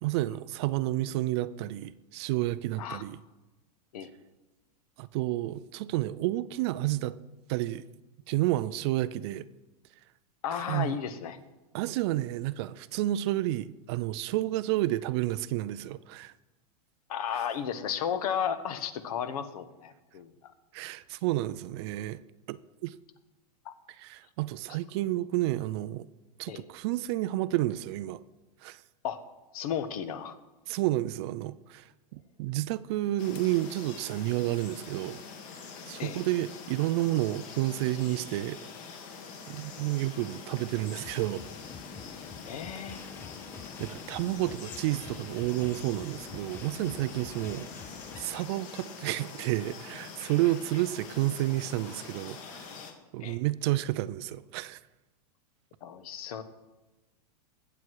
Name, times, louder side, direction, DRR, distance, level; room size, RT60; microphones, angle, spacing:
voice 1, 0.0-3.2 5.0-7.2 7.5-7.8 8.3-9.5 10.7-11.0 11.7-16.3 20.7-22.2 22.5-22.9 23.9-26.1 26.4-28.2 28.6-28.8 30.7-35.2 35.9-38.6 39.5-41.4 43.8-52.7 53.1-54.8, right 16 dB, 40° right, 0.4 m, -30 dB
voice 2, 10.4-11.4 17.1-20.5 23.6-23.7 26.5-26.6 29.0-29.2 29.5-30.4 36.0-36.2 42.4-43.3 53.2-53.4 55.8-56.4, left 8 dB, 60° left, 1.3 m, -34 dB
sound 1, 33.2-52.9, left 5 dB, 35° left, 1.8 m, -45 dB
sound 2, 41.0-48.4, left 5 dB, 10° left, 0.5 m, -47 dB
20.5 x 8.0 x 4.7 m
supercardioid pair, 150°, 21 cm